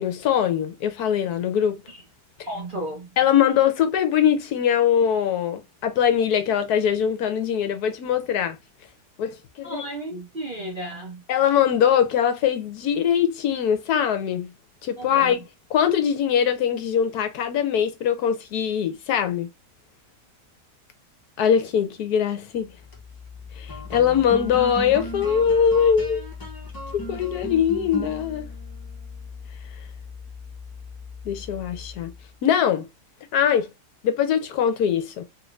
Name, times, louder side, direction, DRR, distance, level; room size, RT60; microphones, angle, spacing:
voice 1, 0.0-1.8 3.2-8.6 9.2-9.8 11.3-14.5 14.8-15.4 15.7-19.5 21.4-22.7 23.6-26.2 26.9-28.4 31.2-32.1 32.4-32.9 33.3-33.7 34.0-35.2, left 8 dB, 70° left, 1.1 m, -22 dB
voice 2, 2.5-3.1 9.6-11.2 15.0-15.3, right 1 dB, 40° right, 0.7 m, -33 dB
sound 1, 22.7-32.3, left 2 dB, 25° left, 0.4 m, -37 dB
3.1 x 2.5 x 3.1 m
omnidirectional pair, 1.8 m